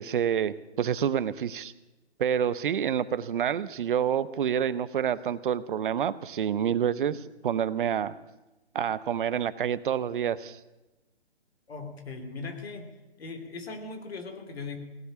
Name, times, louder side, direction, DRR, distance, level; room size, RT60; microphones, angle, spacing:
voice 1, 0.0-1.7 2.2-8.1 8.7-10.6, right 8 dB, 50° right, 17 dB, 0.8 m, -28 dB
voice 2, 11.7-12.9 13.2-14.8, left 4 dB, 65° left, 6 dB, 2.8 m, -39 dB
17.5 x 8.1 x 10.0 m, 1.0 s
hypercardioid pair, 150°, 33 cm